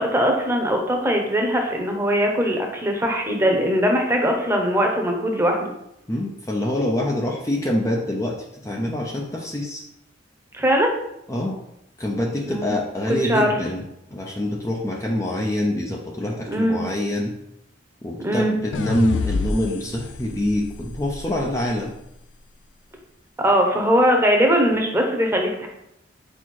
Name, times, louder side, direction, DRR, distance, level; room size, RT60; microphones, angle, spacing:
voice 1, 0.0-5.7 10.5-10.9 12.5-12.7 13.3-13.5 16.5-16.8 18.2-18.6 23.4-25.7, equal, 15° right, 2 dB, 1.0 m, -20 dB
voice 2, 6.1-9.8 11.3-11.6 12.0-13.8 14.1-17.3 18.0-21.9, left 1 dB, 15° left, -1 dB, 0.6 m, -25 dB
sound 1, 18.7-22.0, left 3 dB, 70° left, 0.4 m, -29 dB
4.7 x 4.3 x 4.6 m, 0.80 s
head